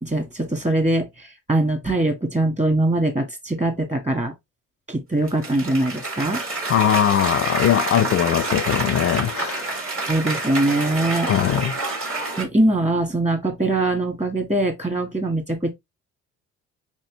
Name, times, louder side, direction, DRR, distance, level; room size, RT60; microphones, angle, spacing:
voice 1, 0.0-4.3 4.9-6.4 10.1-11.3 12.4-15.7, right 2 dB, 25° right, 1.7 m, -22 dB
Cheering / Applause, 5.3-12.4, right 2 dB, 45° right, 2.2 m, -28 dB
voice 2, 6.7-9.7 11.3-11.7, left 10 dB, 50° left, 0.4 m, -20 dB
4.3 x 3.3 x 3.2 m
cardioid pair, 90°, 30 cm